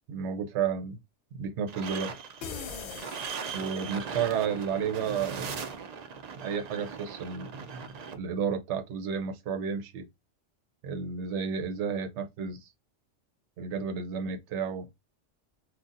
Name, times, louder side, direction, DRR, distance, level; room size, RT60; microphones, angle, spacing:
voice 1, 0.1-1.0 1.3-2.2 3.5-5.5 6.4-10.1 10.8-12.7 13.6-14.9, right 6 dB, 75° right, 0.9 m, -32 dB
sound 1, 1.7-8.1, right 6 dB, 60° right, 0.4 m, -39 dB
sound 2, 2.4-4.2, left 6 dB, 60° left, 0.6 m, -41 dB
3.9 x 2.3 x 2.5 m
omnidirectional pair, 1.2 m